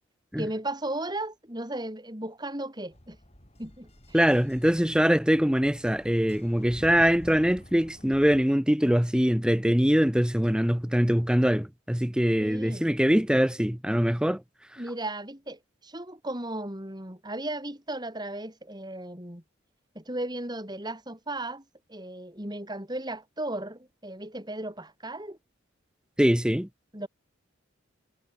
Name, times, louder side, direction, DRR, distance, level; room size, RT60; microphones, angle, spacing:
voice 1, 0.4-3.2 3.6-4.5 12.4-12.9 14.8-19.4 19.9-21.6 21.9-25.4 26.9-27.1, right 1 dB, 20° right, 4.8 m, -36 dB
sound 1, 2.9-8.4, equal, 30° left, 6.2 m, -49 dB
voice 2, 4.1-14.4 26.2-26.7, equal, 5° right, 0.8 m, -23 dB
head